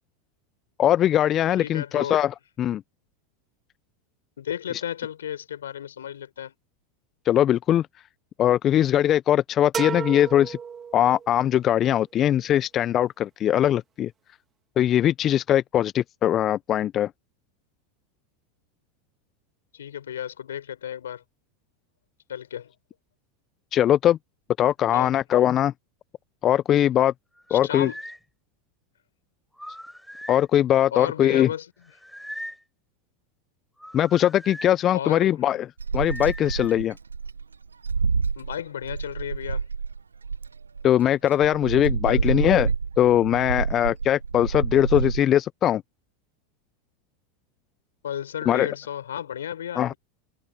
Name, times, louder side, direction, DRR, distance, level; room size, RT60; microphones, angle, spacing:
voice 1, 0.8-2.8 7.3-7.9 8.4-10.6 10.9-14.1 14.8-17.1 23.7-24.2 24.6-25.7 26.4-27.1 27.5-27.9 30.3-31.5 33.9-35.7 35.9-36.9 40.8-42.7 43.0-45.8 48.5-48.7 49.8-49.9, left 11 dB, 35° left, 0.6 m, -21 dB
voice 2, 1.6-2.2 4.4-6.5 19.7-21.2 22.3-22.7 24.9-25.2 27.5-28.0 30.9-31.7 34.9-35.6 38.4-39.7 42.0-42.3 48.0-50.0, left 9 dB, 75° left, 5.0 m, -33 dB
sound 1, 9.7-11.5, right 7 dB, 25° right, 2.3 m, -33 dB
sound 2, 27.3-28.2 29.5-30.5 31.8-32.6 33.8-34.7 36.0-36.9, equal, ahead, 7.3 m, -40 dB
sound 3, 35.8-40.9 41.4-45.2, right 5 dB, 85° right, 1.1 m, -28 dB
hypercardioid pair, 85°, 0 cm